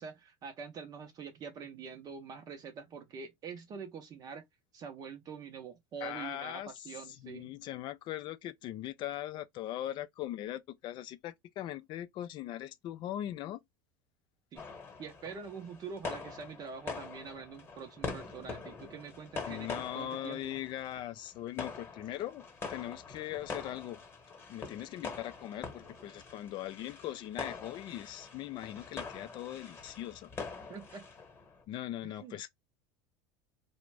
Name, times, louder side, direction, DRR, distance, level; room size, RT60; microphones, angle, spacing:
voice 1, 0.0-4.4 4.7-7.6 14.5-14.6 15.0-20.6 30.7-31.1 32.0-32.4, right 6 dB, 40° right, 0.5 m, -45 dB
voice 2, 6.0-13.6 19.5-24.0 24.5-30.3 31.7-32.5, left 13 dB, 50° left, 0.3 m, -40 dB
sound 1, 14.6-31.6, left 4 dB, 25° left, 1.0 m, -44 dB
2.4 x 2.1 x 3.1 m
supercardioid pair, 110°, 10 cm